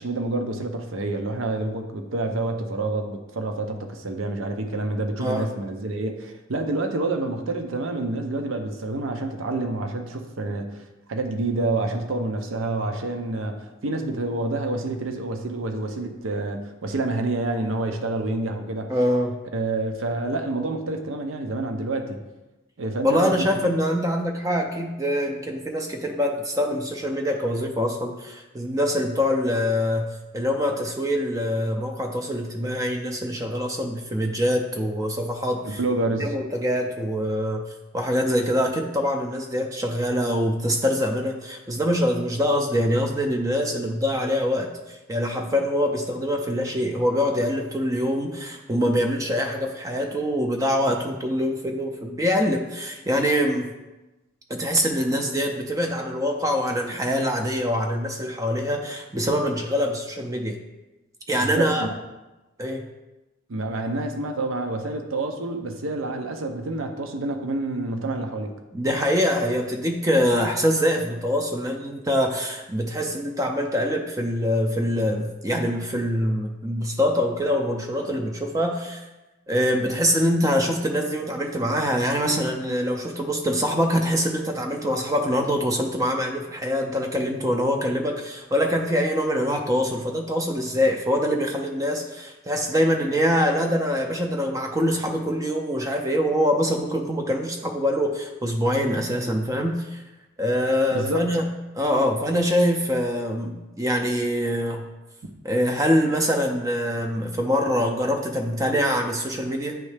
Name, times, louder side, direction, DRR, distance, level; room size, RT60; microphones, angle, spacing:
voice 1, 0.0-10.8 11.1-18.9 19.5-22.2 22.8-23.5 35.6-36.3 61.4-61.9 63.5-68.5 100.9-101.3, right 2 dB, 80° right, 5 dB, 0.6 m, -28 dB
voice 2, 18.9-19.4 23.0-30.1 30.3-35.8 36.2-37.6 37.9-53.7 54.5-60.6 61.3-61.9 62.6-62.8 68.7-79.0 79.5-100.0 100.4-104.9 105.4-109.8, equal, 15° right, 3 dB, 0.4 m, -24 dB
9.2 x 3.2 x 3.3 m, 1.1 s
head